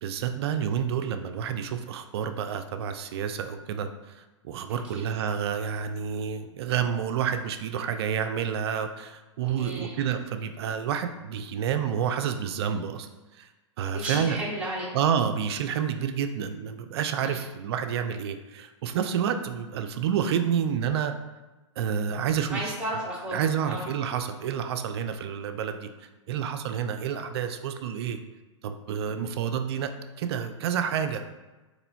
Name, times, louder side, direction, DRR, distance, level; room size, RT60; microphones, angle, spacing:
voice 1, 0.0-13.1 13.4-13.5 13.8-14.4 14.9-21.1 21.8-22.7 23.3-25.9 26.3-28.2 28.6-29.9 30.2-31.2, right 8 dB, 55° right, 8 dB, 0.4 m, -29 dB
voice 2, 4.7-5.0 9.6-10.1 13.8-14.9 17.2-17.4 22.5-23.4 23.7-23.9, right 1 dB, 5° right, -7 dB, 1.2 m, -34 dB
4.1 x 3.1 x 2.7 m, 1.1 s
hypercardioid pair, 110°, 16 cm